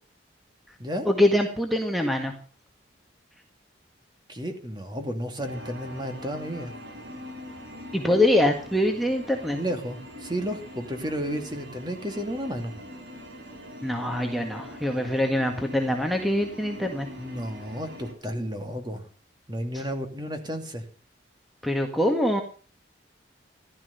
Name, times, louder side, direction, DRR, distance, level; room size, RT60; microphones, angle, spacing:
voice 1, 1.1-2.3 7.9-9.6 13.8-17.1 19.7-19.8 21.6-22.4, left 1 dB, ahead, 4 dB, 1.8 m, -24 dB
voice 2, 4.3-6.7 9.5-12.7 17.2-19.0 19.5-20.8, equal, 25° right, 6 dB, 2.6 m, -32 dB
sound 1, 5.4-18.1, equal, 75° right, 6.2 m, -42 dB
15.5 x 12.5 x 6.9 m, 0.39 s
head